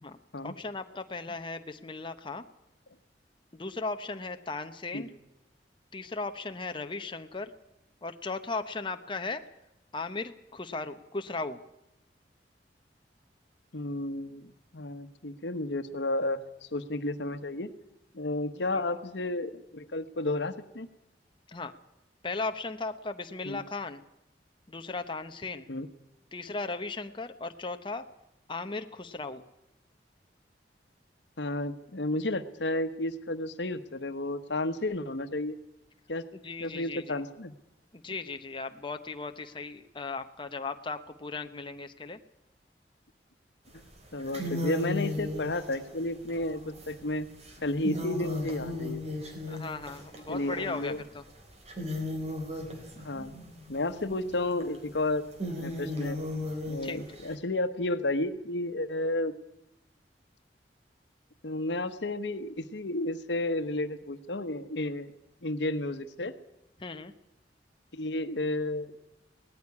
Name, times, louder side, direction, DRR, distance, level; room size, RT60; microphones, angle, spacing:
voice 1, 0.0-2.4 3.5-5.1 5.9-7.5 8.0-9.4 9.9-11.6 18.5-18.8 21.5-21.7 22.2-24.0 24.7-25.7 26.3-28.1 28.5-29.4 36.3-37.2 37.9-42.2 49.4-51.2 56.8-57.2 66.8-67.1, left 3 dB, 30° left, 7 dB, 0.9 m, -37 dB
voice 2, 13.7-17.7 18.1-20.9 23.4-23.6 25.7-25.9 31.4-35.6 36.1-36.2 36.6-37.5 44.1-47.3 47.6-49.0 50.3-51.0 53.0-53.3 53.7-55.2 55.6-56.2 56.7-59.3 61.4-65.1 65.4-66.3 67.9-68.9, left 2 dB, 85° left, 10 dB, 1.2 m, -32 dB
sound 1, 43.7-43.9 44.2-51.2 51.5-57.3, left 1 dB, 40° right, 3.6 m, -36 dB
18.5 x 14.5 x 9.7 m, 0.89 s
head